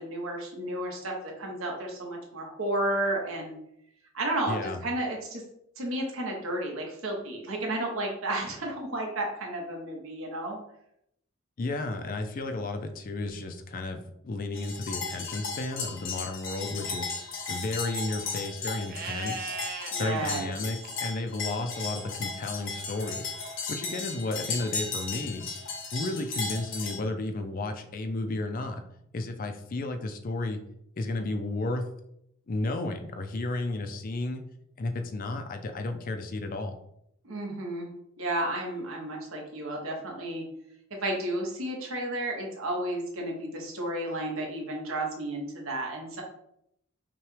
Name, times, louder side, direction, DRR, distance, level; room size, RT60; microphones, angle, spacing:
voice 1, 0.0-3.6 4.1-5.4 5.8-10.6 19.9-20.5 37.2-37.9 38.2-40.4 41.0-46.2, right 1 dB, 80° right, 0 dB, 1.2 m, -32 dB
voice 2, 4.5-4.8 11.6-19.6 20.0-23.3 23.7-25.5 25.9-28.8 29.1-30.6 30.9-31.9 32.5-34.4 34.8-36.7, left 2 dB, 45° left, 6 dB, 0.4 m, -33 dB
sound 1, 14.5-27.0, left 4 dB, 65° left, 0.9 m, -36 dB
Livestock farm animals working animals, 18.9-19.9 22.8-23.7, right 3 dB, 45° right, 0.4 m, -38 dB
5.8 x 2.3 x 3.2 m, 0.76 s
head